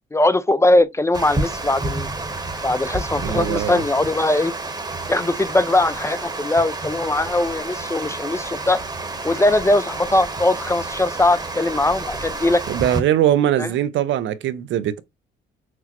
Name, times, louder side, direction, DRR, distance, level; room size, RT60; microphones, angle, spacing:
voice 1, 0.1-2.1 2.6-4.5 5.1-8.8 9.2-12.6 13.6-13.7, left 2 dB, 15° left, 0.3 m, -20 dB
Water, 1.1-13.0, right 2 dB, 20° right, 1.0 m, -29 dB
voice 2, 3.2-3.8 12.7-15.0, right 11 dB, 75° right, 0.5 m, -21 dB
6.0 x 2.0 x 2.9 m
cardioid pair, 90°, 20 cm